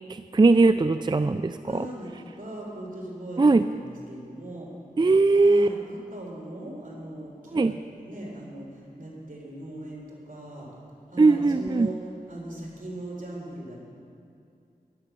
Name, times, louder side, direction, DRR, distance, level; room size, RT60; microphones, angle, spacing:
voice 1, 0.1-1.6 3.4-3.6 5.0-5.7 7.5-7.7 11.2-11.9, right 3 dB, 30° right, 11 dB, 0.3 m, -19 dB
voice 2, 1.6-4.7 5.4-10.7 11.1-13.8, right 1 dB, 60° right, -3 dB, 3.9 m, -39 dB
15.5 x 11.0 x 6.2 m, 2.5 s
wide cardioid pair, 55°, 16 cm